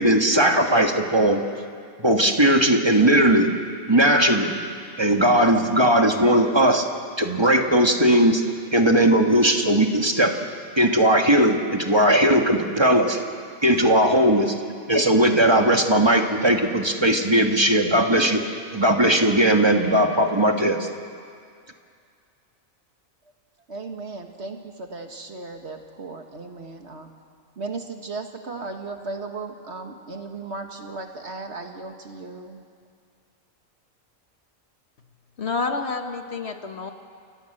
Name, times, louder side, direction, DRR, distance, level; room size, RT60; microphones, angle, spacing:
voice 1, 0.0-1.4 2.0-3.5 3.9-4.5 5.0-6.9 7.2-8.4 8.7-10.3 10.8-13.2 13.6-14.6 14.9-18.4 18.7-20.9, right 1 dB, 20° right, 4 dB, 1.5 m, -18 dB
voice 2, 23.7-27.1 27.6-32.6, right 3 dB, 50° right, 4 dB, 1.8 m, -36 dB
voice 3, 35.4-36.9, left 4 dB, 50° left, 5 dB, 1.6 m, -28 dB
28.0 x 18.0 x 7.8 m, 2.3 s
omnidirectional pair, 1.4 m